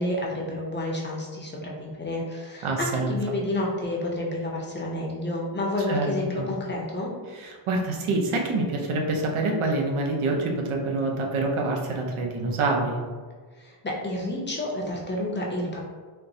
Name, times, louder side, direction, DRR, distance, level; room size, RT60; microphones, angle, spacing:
voice 1, 0.0-7.1 13.6-15.8, left 1 dB, 25° left, -3 dB, 0.6 m, -30 dB
voice 2, 2.6-3.1 5.9-6.5 7.3-13.0, right 2 dB, 85° right, 0 dB, 0.7 m, -26 dB
4.1 x 2.0 x 2.7 m, 1.5 s
wide cardioid pair, 120°, 48 cm